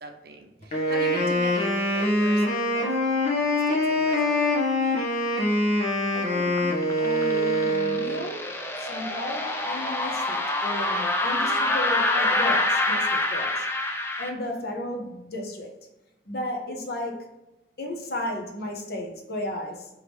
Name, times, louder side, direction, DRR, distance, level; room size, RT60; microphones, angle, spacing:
voice 1, 0.0-2.9 3.7-4.4, right 1 dB, 60° right, 4 dB, 0.6 m, -40 dB
Wind instrument woodwind instrument, 0.7-8.3, left 1 dB, 40° left, 1.2 m, -24 dB
voice 2, 6.1-8.5 8.8-13.7 14.2-15.7 16.3-17.3 17.8-19.9, left 1 dB, 60° left, 2 dB, 0.8 m, -34 dB
sound 1, 6.6-14.3, left 2 dB, 15° left, 0.4 m, -26 dB
3.8 x 3.4 x 3.2 m, 0.99 s
head